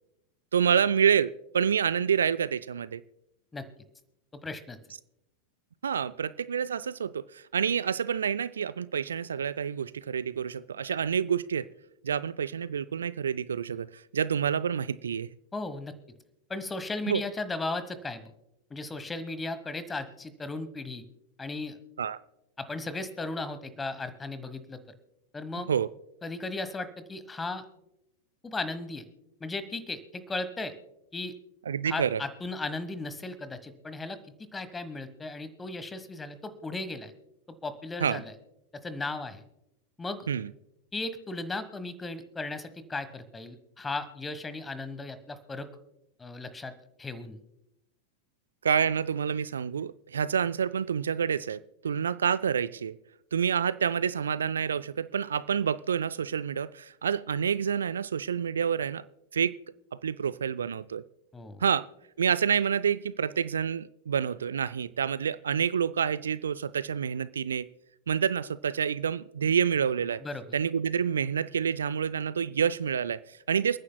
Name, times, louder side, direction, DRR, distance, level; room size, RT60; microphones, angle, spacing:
voice 1, 0.5-3.0 5.8-11.7 12.0-15.3 17.1-17.2 22.0-22.2 25.7-25.9 31.7-32.2 38.0-38.2 40.3-40.5 48.6-53.0 53.3-59.1 59.3-59.5 60.0-61.0 61.6-61.8 62.2-67.7 68.1-70.2 70.5-73.8, right 7 dB, 70° right, 17 dB, 0.3 m, -28 dB
voice 2, 4.4-4.8 15.5-15.9 16.5-18.3 18.7-21.0 21.4-21.8 22.6-24.8 25.3-25.7 26.2-27.6 28.4-29.0 29.4-30.7 31.1-31.3 31.8-34.2 34.5-37.1 37.6-38.3 38.8-39.4 40.0-40.3 40.9-45.7 46.2-46.7 47.0-47.4 61.3-61.6 70.2-70.4, left 3 dB, 15° left, 13 dB, 1.2 m, -36 dB
29.0 x 9.8 x 2.2 m, 0.86 s
figure-of-eight pair, 90°, 0 cm